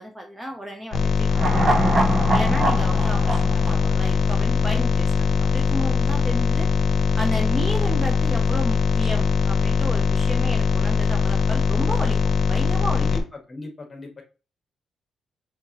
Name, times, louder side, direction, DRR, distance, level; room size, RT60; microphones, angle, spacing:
voice 1, 0.0-2.0 2.3-6.7 7.2-12.2 12.4-13.1, equal, 10° right, 3 dB, 0.7 m, -33 dB
sound 1, 0.9-13.2, left 5 dB, 60° left, 0.8 m, -21 dB
sound 2, 1.3-4.7 5.0-5.1, right 2 dB, 30° right, 0.9 m, -24 dB
voice 2, 13.5-14.2, left 2 dB, 25° left, 3 dB, 1.4 m, -36 dB
4.5 x 3.6 x 2.9 m, 0.33 s
cardioid pair, 125°, 0 cm